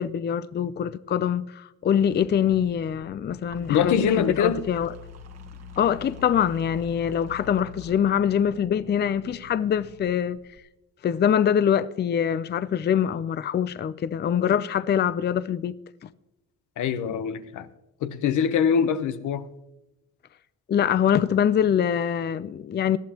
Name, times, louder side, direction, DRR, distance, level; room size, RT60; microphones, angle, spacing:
voice 1, 0.0-4.9 5.8-10.4 11.0-15.7 16.0-16.1 20.7-23.0, left 8 dB, 35° left, 0.5 m, -24 dB
sound 1, 2.1-10.6, left 3 dB, 55° right, 1.5 m, -45 dB
voice 2, 3.7-4.6 16.8-17.7 18.0-19.5, left 7 dB, 80° left, 0.9 m, -23 dB
19.0 x 12.0 x 2.9 m
cardioid pair, 90°, 30 cm